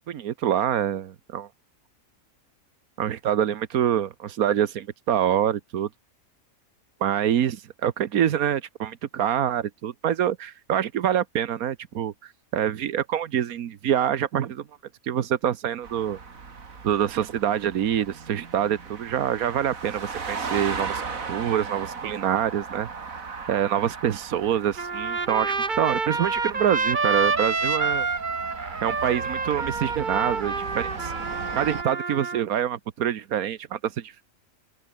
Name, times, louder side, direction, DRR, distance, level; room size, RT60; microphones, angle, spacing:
voice 1, 0.1-1.5 3.0-5.9 7.0-14.6 15.0-16.2 16.8-21.0 21.3-22.9 23.5-28.1 28.8-31.1 31.5-34.2, right 10 dB, 90° right, 1.5 m, -26 dB
sound 1, 15.8-31.8, right 5 dB, 75° right, 2.6 m, -37 dB
Trumpet, 24.8-32.4, right 4 dB, 35° right, 1.7 m, -28 dB
omnidirectional pair, 1.5 m